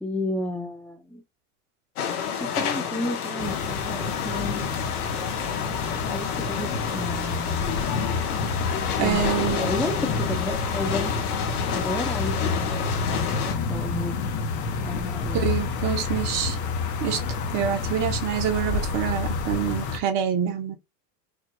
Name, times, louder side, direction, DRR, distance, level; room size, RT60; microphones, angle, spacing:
voice 1, 0.0-1.2 2.4-4.7 6.1-7.8 9.0-11.1 11.7-12.9 13.7-14.2 14.8-15.4, left 1 dB, 5° left, 0.8 m, -32 dB
sound 1, 2.0-13.5, left 7 dB, 70° left, 1.4 m, -30 dB
sound 2, 3.4-20.0, left 4 dB, 40° left, 1.1 m, -29 dB
voice 2, 9.0-9.7 15.3-16.6 17.0-17.2 17.5-20.8, right 9 dB, 45° right, 1.5 m, -26 dB
4.8 x 2.8 x 2.3 m
hypercardioid pair, 100°, 46 cm